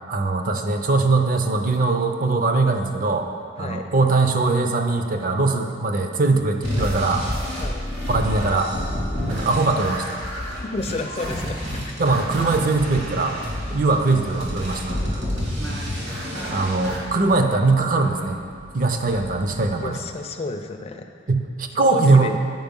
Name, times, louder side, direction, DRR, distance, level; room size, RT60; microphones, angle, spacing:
voice 1, 0.1-3.3 3.6-7.2 8.1-8.7 9.3-10.2 12.0-13.4 13.7-15.2 16.5-18.4 18.7-20.0 21.3-22.4, right 3 dB, 45° right, 5 dB, 0.6 m, -21 dB
voice 2, 3.6-3.9 7.6-7.8 9.4-9.6 10.6-11.6 11.9-12.0 18.9-19.2 19.8-21.1 21.8-22.4, left 3 dB, 35° left, 6 dB, 0.4 m, -31 dB
sound 1, 6.6-17.0, equal, 65° right, 2.3 m, -29 dB
Singing, 15.5-20.3, equal, 85° right, 0.9 m, -41 dB
9.2 x 4.8 x 5.3 m, 2.3 s
head